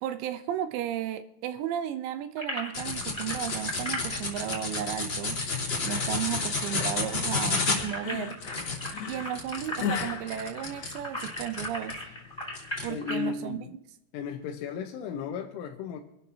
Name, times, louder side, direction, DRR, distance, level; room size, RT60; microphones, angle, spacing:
voice 1, 0.0-5.4 5.8-8.4 9.1-12.0 12.8-13.6, right 11 dB, 80° right, 10 dB, 2.8 m, -34 dB
sound 1, 2.4-6.3 6.5-6.6 6.9-13.3, left 1 dB, 5° left, 3.9 m, -38 dB
sound 2, 2.7-12.0 12.5-12.9, left 3 dB, 30° left, 3.2 m, -31 dB
sound 3, 5.8-11.4, left 8 dB, 60° left, 3.1 m, -37 dB
voice 2, 12.9-13.8 14.1-16.0, left 6 dB, 90° left, 2 dB, 3.6 m, -35 dB
26.5 x 12.5 x 2.8 m, 0.81 s
omnidirectional pair, 5.4 m